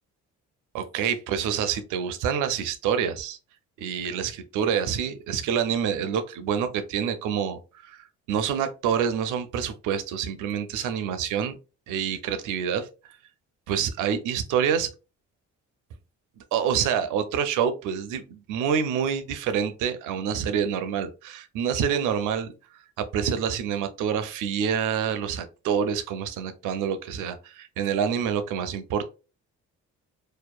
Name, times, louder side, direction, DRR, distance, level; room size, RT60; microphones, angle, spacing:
voice 1, 0.7-3.4 3.8-8.0 8.3-11.6 11.9-12.9 13.7-14.9 16.5-22.5 23.0-29.0, right 8 dB, 90° right, 9 dB, 0.5 m, -27 dB
2.7 x 2.1 x 2.2 m, 0.32 s
cardioid pair, 90°, 30 cm